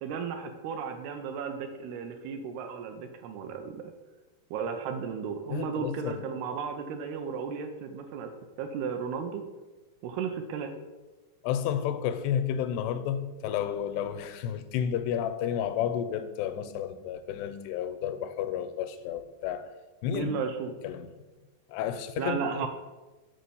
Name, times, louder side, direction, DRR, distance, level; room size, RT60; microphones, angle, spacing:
voice 1, 0.0-3.7 4.5-8.3 8.6-9.4 10.0-10.7 20.1-20.7 22.2-22.7, right 6 dB, 80° right, 2.5 m, -34 dB
voice 2, 5.5-6.2 11.4-19.7 20.0-20.3 20.8-21.1 21.7-22.7, left 9 dB, 85° left, 2.7 m, -31 dB
7.5 x 4.4 x 6.8 m
omnidirectional pair, 4.7 m